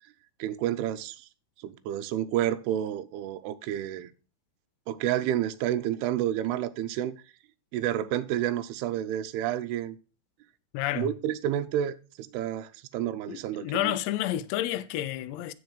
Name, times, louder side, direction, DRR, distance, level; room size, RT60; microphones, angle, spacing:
voice 1, 0.4-1.3 1.6-4.1 4.9-7.1 7.7-10.0 11.0-14.0, right 11 dB, 85° right, 2.3 m, -30 dB
voice 2, 10.7-11.1 13.3-15.5, left 14 dB, 80° left, 2.6 m, -30 dB
8.0 x 6.1 x 5.0 m
omnidirectional pair, 5.4 m